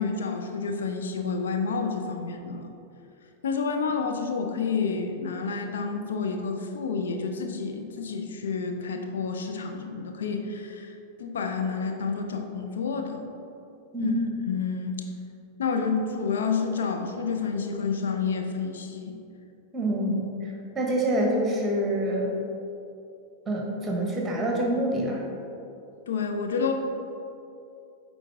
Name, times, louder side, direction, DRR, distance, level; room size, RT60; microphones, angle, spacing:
voice 1, 0.0-2.7 3.4-10.9 11.2-13.2 14.0-15.0 15.6-19.2 26.1-26.7, left 5 dB, 65° left, 4 dB, 0.5 m, -29 dB
voice 2, 13.9-14.3 19.7-22.3 23.5-25.2, right 1 dB, 15° right, -1 dB, 1.3 m, -26 dB
9.0 x 4.0 x 3.6 m, 2.7 s
figure-of-eight pair, 90°, 0 cm